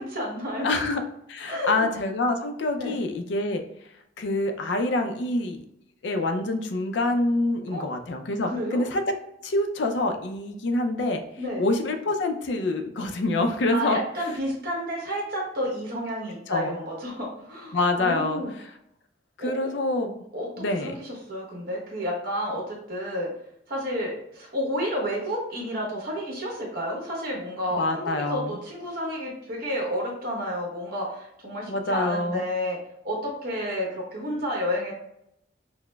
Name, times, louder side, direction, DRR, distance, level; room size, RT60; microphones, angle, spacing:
voice 1, 0.0-0.7 1.5-1.9 2.8-2.9 7.7-7.9 8.4-8.8 11.4-11.7 13.7-18.5 19.4-19.5 20.3-20.5 20.8-23.3 23.7-32.8 33.0-34.9, equal, 55° right, -3 dB, 1.2 m, -30 dB
voice 2, 0.6-3.6 4.2-5.6 6.0-9.0 9.4-11.2 11.6-14.0 16.5-16.8 17.7-18.4 19.4-20.2 20.6-21.0 27.8-28.6 31.7-32.4, left 2 dB, 70° left, 6 dB, 0.4 m, -26 dB
5.8 x 2.0 x 2.2 m, 0.77 s
head